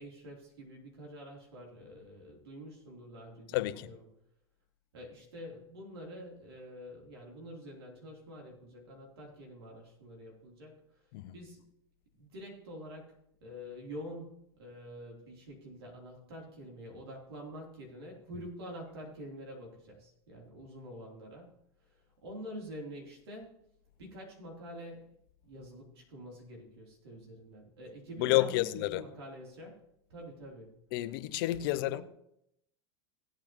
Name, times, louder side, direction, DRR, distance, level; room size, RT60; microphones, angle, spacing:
voice 1, 0.0-4.0 4.9-10.8 11.3-11.6 12.2-23.6 24.0-25.1 25.4-29.8 30.1-30.8 31.6-32.0, equal, 90° right, 3.2 m, -47 dB
voice 2, 3.5-3.9 11.1-11.3 28.2-29.0 30.9-32.0, left 16 dB, 70° left, 0.7 m, -30 dB
17.0 x 8.5 x 3.0 m
hypercardioid pair, 105°, 13 cm